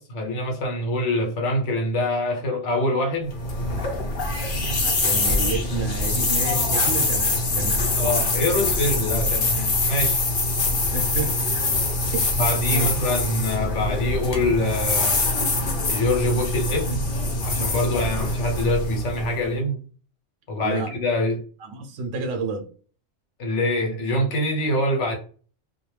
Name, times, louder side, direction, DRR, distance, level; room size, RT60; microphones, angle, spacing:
voice 1, 0.0-3.3 8.0-10.2 12.4-15.2 15.9-17.0 17.4-19.8 20.5-21.4 23.4-25.2, left 1 dB, 75° left, 1.1 m, -25 dB
sound 1, 3.3-19.5, left 2 dB, 50° left, 0.8 m, -24 dB
voice 2, 4.8-8.2 10.9-11.6 12.1-12.4 12.7-12.9 20.6-20.9 21.6-22.7, right 4 dB, 90° right, 0.9 m, -30 dB
2.3 x 2.2 x 3.1 m
omnidirectional pair, 1.3 m